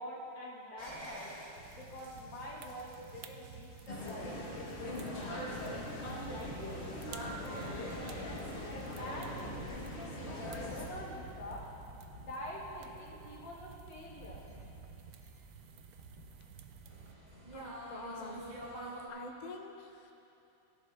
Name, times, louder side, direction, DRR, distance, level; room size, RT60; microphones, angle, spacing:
voice 1, 0.0-1.4 1.7-5.4 6.3-7.6 8.7-11.6 12.1-14.4, left 1 dB, 75° left, -4 dB, 2.5 m, -46 dB
sound 1, 0.8-19.1, equal, 25° right, 1.8 m, -51 dB
sound 2, 1.5-17.1, right 8 dB, 70° right, 0.9 m, -53 dB
sound 3, 3.9-10.9, left 1 dB, 40° left, 1.4 m, -41 dB
voice 2, 17.1-20.1, left 3 dB, 60° left, 3 dB, 0.4 m, -47 dB
16.5 x 11.0 x 3.4 m, 2.8 s
omnidirectional pair, 2.0 m